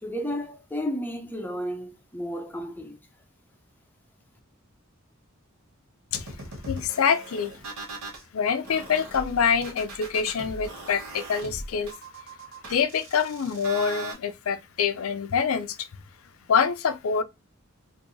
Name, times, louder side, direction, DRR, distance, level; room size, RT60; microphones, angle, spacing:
voice 1, 0.0-3.0, equal, 10° left, 0.6 m, -32 dB
sound 1, 6.1-8.2 8.6-14.1, right 2 dB, 70° right, 1.2 m, -40 dB
voice 2, 6.7-7.6 8.3-11.9 12.7-15.9 16.5-17.2, left 6 dB, 70° left, 0.4 m, -25 dB
4.5 x 2.6 x 2.6 m
head